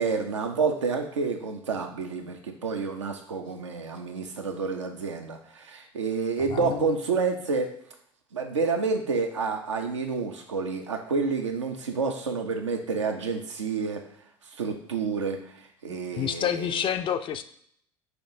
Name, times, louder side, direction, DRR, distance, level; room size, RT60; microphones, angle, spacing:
voice 1, 0.0-7.7 8.3-14.0 14.6-15.4 15.8-16.8, right 4 dB, 80° right, 4 dB, 0.6 m, -29 dB
voice 2, 6.5-7.0 15.9-17.4, left 9 dB, 35° left, 10 dB, 0.4 m, -29 dB
5.8 x 3.0 x 2.7 m, 0.65 s
figure-of-eight pair, 65°, 15 cm